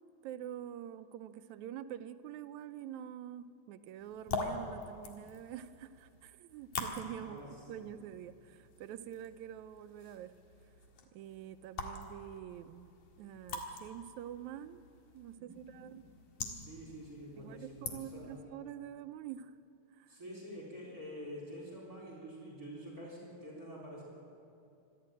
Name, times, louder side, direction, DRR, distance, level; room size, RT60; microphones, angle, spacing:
voice 1, 0.0-10.3 11.1-14.8 15.2-16.0 17.4-19.6 19.9-20.2, right 10 dB, 80° right, 11 dB, 2.0 m, -46 dB
sound 1, 4.0-18.4, left 4 dB, 80° left, 3.2 m, -45 dB
voice 2, 7.2-7.9 15.4-15.9 16.4-18.4 20.1-24.0, equal, 30° right, -3 dB, 4.3 m, -48 dB
25.5 x 12.0 x 8.8 m, 2.5 s
omnidirectional pair, 3.3 m